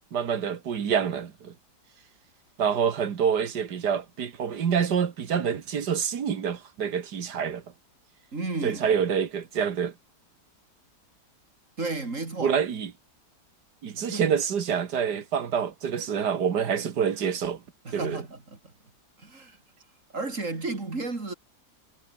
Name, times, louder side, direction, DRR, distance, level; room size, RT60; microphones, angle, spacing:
voice 1, 0.1-1.5 2.6-7.6 8.6-9.9 12.4-12.9 13.8-17.6 17.9-18.2, right 7 dB, 75° right, 2.1 m, -27 dB
voice 2, 8.3-8.9 11.8-12.6 14.1-14.2 17.8-18.6 19.2-19.6 20.1-21.3, right 3 dB, 50° right, 3.8 m, -32 dB
omnidirectional pair, 1.8 m